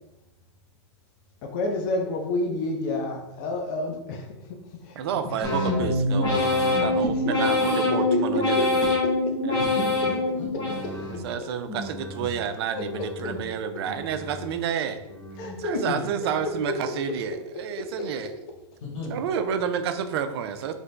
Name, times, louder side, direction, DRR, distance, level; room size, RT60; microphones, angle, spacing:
voice 1, 1.4-4.2 4.8-5.0 5.4-5.5 7.2-8.2 8.5-8.9 9.5-9.6 12.7-13.0 15.4-15.9 17.8-17.9, left 2 dB, 45° left, 2 dB, 0.5 m, -29 dB
voice 2, 5.0-9.0 9.4-9.7 11.2-15.0 15.6-18.3 19.1-20.7, right 8 dB, 60° right, 9 dB, 0.4 m, -30 dB
sound 1, 5.4-11.3 11.7-12.3 12.8-13.4 13.9-14.5 15.0-15.6 16.1-16.6, left 2 dB, 25° left, 1.0 m, -26 dB
voice 3, 9.6-11.1 15.9-16.0 18.8-19.2, left 3 dB, 80° left, -5 dB, 1.2 m, -35 dB
2.9 x 2.6 x 3.3 m, 0.94 s
hypercardioid pair, 135°, 15 cm